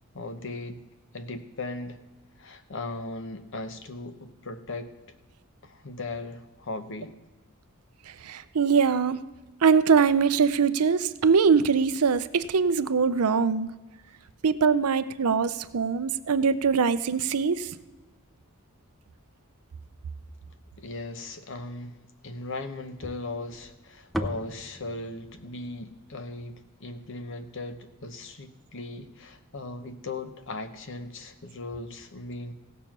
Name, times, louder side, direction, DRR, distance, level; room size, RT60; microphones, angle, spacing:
voice 1, 0.1-0.8 1.1-2.0 2.4-4.9 5.6-7.1 20.8-32.5, left 2 dB, 60° left, 9 dB, 0.9 m, -38 dB
voice 2, 8.2-9.2 9.6-13.7 14.4-17.7, right 5 dB, 80° right, 13 dB, 0.6 m, -22 dB
sound 1, 23.0-27.3, equal, ahead, 0.5 m, -38 dB
16.5 x 6.9 x 6.0 m, 1.2 s
head